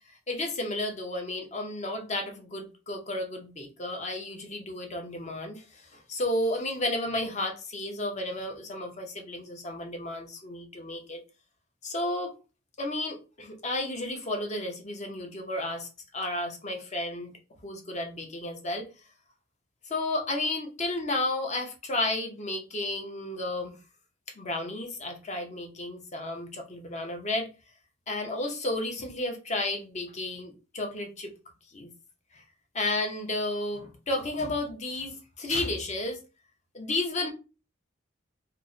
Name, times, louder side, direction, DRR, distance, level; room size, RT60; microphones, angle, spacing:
voice 1, 0.1-11.2 11.8-12.3 12.8-17.3 17.6-18.9 19.8-23.8 24.3-27.5 28.1-31.3 31.7-31.9 32.3-32.4 32.7-36.2 36.7-37.3, left 2 dB, 35° left, 3 dB, 0.7 m, -32 dB
2.8 x 2.1 x 3.7 m, 0.32 s
head